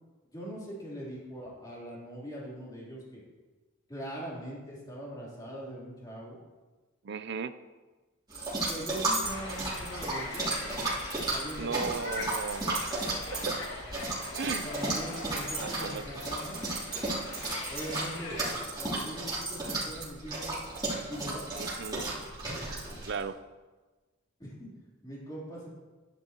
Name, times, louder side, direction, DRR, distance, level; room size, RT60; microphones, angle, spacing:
voice 1, 0.3-3.2 3.9-6.4 8.7-10.6 11.3-12.0 14.6-16.6 17.7-18.4 18.8-20.6 20.9-21.5 24.4-24.7 25.0-25.7, equal, 20° left, -6 dB, 3.4 m, -41 dB
voice 2, 7.0-7.5 11.6-13.6 14.4-14.7 15.6-16.1 21.5-22.1 23.0-23.4, right 5 dB, 60° right, 12 dB, 0.5 m, -36 dB
sound 1, 8.3-23.2, right 2 dB, 20° right, 3.2 m, -34 dB
sound 2, 9.2-18.6, left 2 dB, 60° left, 1.8 m, -42 dB
12.5 x 10.5 x 3.0 m, 1.3 s
head